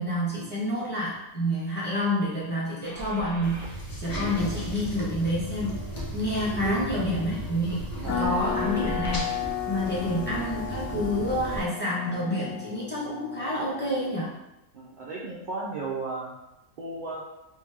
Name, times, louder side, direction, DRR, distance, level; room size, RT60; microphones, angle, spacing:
voice 1, 0.0-5.8 6.1-9.3 9.7-14.4, equal, 10° left, -7 dB, 0.9 m, -28 dB
Car / Engine starting, 2.8-8.3, right 1 dB, 10° right, 0.7 m, -38 dB
sound 1, 3.4-11.6, equal, 30° left, 0.4 m, -36 dB
voice 2, 6.5-6.9 8.0-8.2 14.7-16.3 16.8-17.2, right 3 dB, 75° right, -5 dB, 0.4 m, -34 dB
sound 2, 8.1-14.3, left 9 dB, 70° left, 1.0 m, -34 dB
3.3 x 2.7 x 3.5 m, 0.91 s
omnidirectional pair, 1.5 m